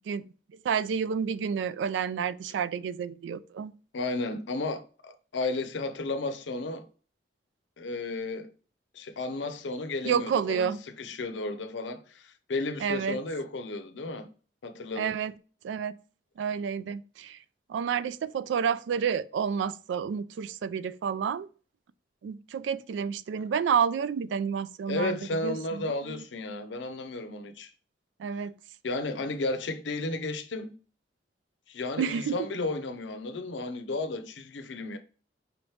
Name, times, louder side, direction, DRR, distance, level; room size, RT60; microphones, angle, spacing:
voice 1, 0.6-3.7 10.0-10.8 12.8-13.2 15.0-15.3 15.6-15.9 16.4-17.4 17.7-21.5 22.2-26.2 28.2-28.5 32.0-32.4, right 7 dB, 90° right, 0.3 m, -30 dB
voice 2, 3.9-6.9 7.8-8.5 8.9-14.3 14.6-15.2 24.9-27.7 28.8-30.7 31.7-35.0, left 2 dB, 85° left, 0.6 m, -33 dB
5.0 x 3.1 x 3.2 m
head